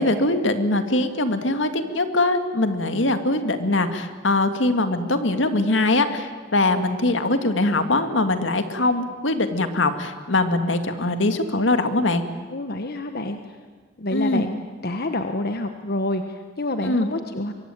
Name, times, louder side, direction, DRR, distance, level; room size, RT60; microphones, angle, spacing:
voice 1, 0.0-12.2 14.1-14.5 16.8-17.1, left 2 dB, 75° left, 8 dB, 2.1 m, -22 dB
voice 2, 12.5-13.4 14.0-17.5, left 1 dB, 55° left, 7 dB, 1.2 m, -28 dB
24.5 x 22.5 x 9.3 m, 1.5 s
head